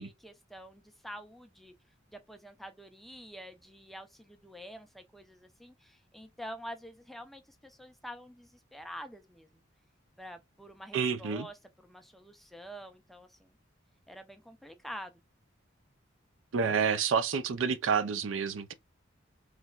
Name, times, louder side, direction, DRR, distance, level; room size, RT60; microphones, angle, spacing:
voice 1, 0.0-1.7 2.1-9.5 10.2-11.6 11.8-13.5 14.1-15.2, equal, ahead, 0.4 m, -47 dB
voice 2, 10.9-11.5 16.5-18.7, right 6 dB, 75° right, 0.4 m, -29 dB
3.2 x 2.8 x 2.3 m
head